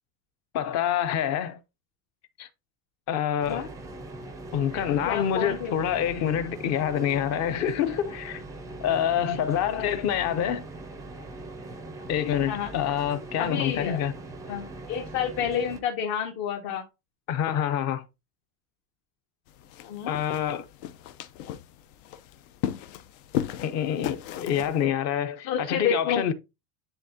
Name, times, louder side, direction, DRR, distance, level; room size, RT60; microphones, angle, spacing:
voice 1, 0.5-1.6 2.4-2.5 3.1-3.7 4.5-8.4 8.8-10.6 12.1-14.1 17.3-18.0 20.1-20.7 23.6-26.3, left 9 dB, 35° left, 0.6 m, -26 dB
sound 1, 3.4-15.8, right 2 dB, 10° right, 0.4 m, -41 dB
voice 2, 4.7-5.8 12.5-12.7 13.4-14.0 14.5-16.8 19.8-20.1 25.4-26.2, left 8 dB, 60° left, 1.6 m, -29 dB
sound 2, 19.5-24.9, left 11 dB, 80° left, 0.8 m, -36 dB
10.0 x 3.6 x 2.7 m
cardioid pair, 165°, 44 cm